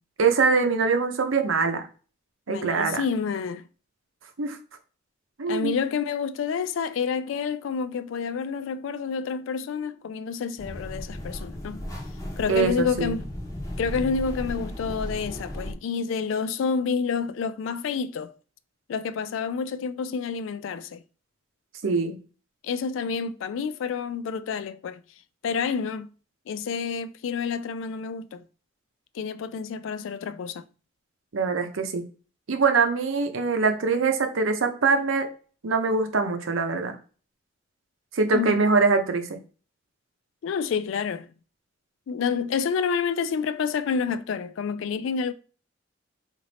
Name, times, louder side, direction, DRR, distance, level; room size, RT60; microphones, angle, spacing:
voice 1, 0.2-1.9 2.5-3.0 4.4-4.6 5.4-5.7 12.5-13.1 21.8-22.2 31.3-32.0 32.5-35.3 35.6-37.0 38.1-39.3, right 4 dB, 85° right, 0.7 m, -23 dB
voice 2, 2.5-3.7 5.5-11.8 12.4-13.2 13.8-18.3 18.9-21.0 22.6-25.0 25.4-26.1 26.5-28.4 29.1-30.6 38.3-38.7 40.4-41.3 42.1-45.3, left 6 dB, 75° left, 0.3 m, -29 dB
sound 1, 10.6-15.7, left 1 dB, 15° left, 0.6 m, -35 dB
3.9 x 2.5 x 3.2 m
head